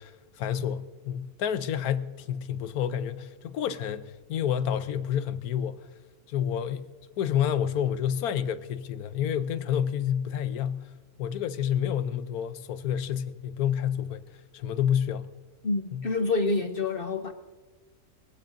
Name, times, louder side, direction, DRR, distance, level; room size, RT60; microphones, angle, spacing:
voice 1, 0.0-5.9 6.3-6.9 7.2-10.9 11.2-14.2 14.5-15.3 15.9-16.0, left 9 dB, 80° left, 1.1 m, -29 dB
voice 2, 15.6-17.3, left 3 dB, 50° left, 0.7 m, -27 dB
21.0 x 15.5 x 2.6 m
omnidirectional pair, 1.6 m